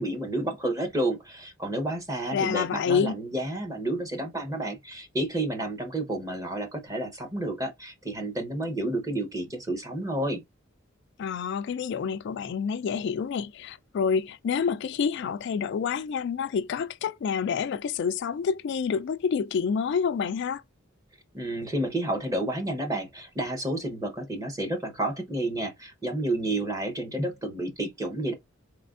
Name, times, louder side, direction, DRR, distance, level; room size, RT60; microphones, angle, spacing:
voice 1, 0.0-10.4 21.3-28.3, right 1 dB, 15° right, 0.9 m, -30 dB
voice 2, 2.3-3.2 11.2-20.6, left 6 dB, 60° left, 0.3 m, -28 dB
4.3 x 3.2 x 2.5 m
head